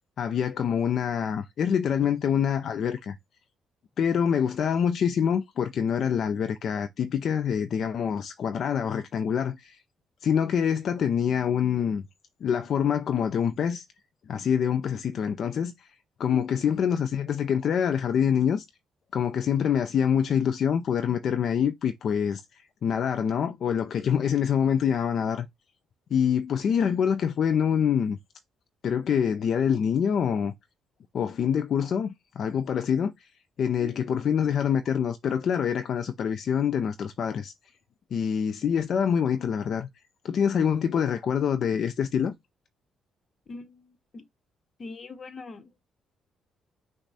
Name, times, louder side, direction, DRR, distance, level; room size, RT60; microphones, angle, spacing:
voice 1, 0.2-3.2 4.0-9.8 10.2-12.0 12.4-13.8 14.3-15.9 16.2-18.7 19.1-25.5 26.1-28.2 28.8-30.5 31.1-33.3 33.6-37.5 38.1-39.9 40.2-42.3, left 8 dB, 60° left, 0.4 m, -25 dB
voice 2, 16.3-16.7 33.8-33.9 43.5-44.2 44.8-45.8, left 4 dB, 40° left, 0.9 m, -41 dB
6.0 x 2.2 x 4.0 m
cardioid pair, 90°, 0 cm